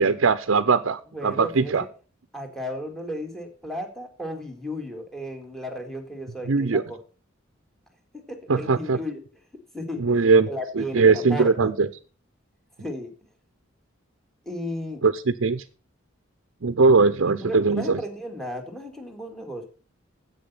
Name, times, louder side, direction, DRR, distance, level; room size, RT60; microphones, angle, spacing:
voice 1, 0.0-1.8 6.5-6.8 8.5-9.0 10.0-10.5 10.8-11.9 15.0-15.6 16.6-18.0, right 4 dB, 75° right, 11 dB, 0.6 m, -20 dB
voice 2, 1.1-1.9 2.3-7.0 8.1-9.2 9.7-10.1 10.5-11.7 12.8-13.1 14.5-15.0 17.4-19.6, equal, ahead, 3 dB, 2.0 m, -34 dB
10.5 x 8.2 x 5.5 m, 0.36 s
head